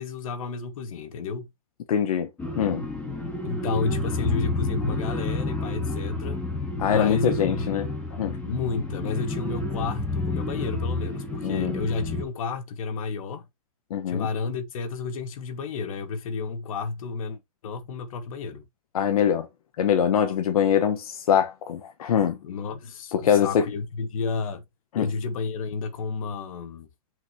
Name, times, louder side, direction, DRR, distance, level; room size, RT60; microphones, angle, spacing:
voice 1, 0.0-1.5 3.4-6.4 6.8-7.7 8.4-13.5 14.1-18.6 22.4-24.6 25.0-26.9, left 4 dB, 70° left, 2.3 m, -31 dB
voice 2, 1.9-2.3 2.6-2.8 6.8-8.4 11.4-11.8 13.9-14.3 18.9-19.5 19.8-22.4 23.1-23.6 24.9-25.1, left 8 dB, 90° left, 1.5 m, -23 dB
sound 1, 2.4-12.2, left 2 dB, 5° left, 2.6 m, -30 dB
8.3 x 5.8 x 3.1 m
supercardioid pair, 165°, 18 cm